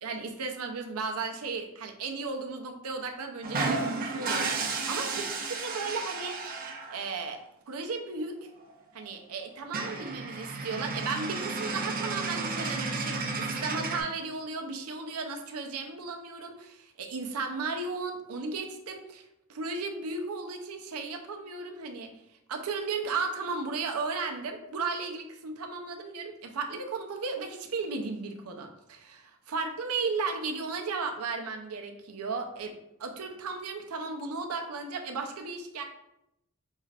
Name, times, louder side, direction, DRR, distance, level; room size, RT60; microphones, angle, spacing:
voice 1, 0.0-5.2 5.6-6.6 6.9-7.4 7.7-8.4 8.9-19.2 19.5-22.1 22.5-35.8, right 4 dB, 85° right, 4 dB, 0.6 m, -35 dB
sound 1, 3.4-7.1 8.6-8.7 9.0-9.1 9.4-9.5 9.7-14.0, right 3 dB, 40° right, 0.6 m, -33 dB
5.3 x 3.3 x 2.4 m, 0.82 s
head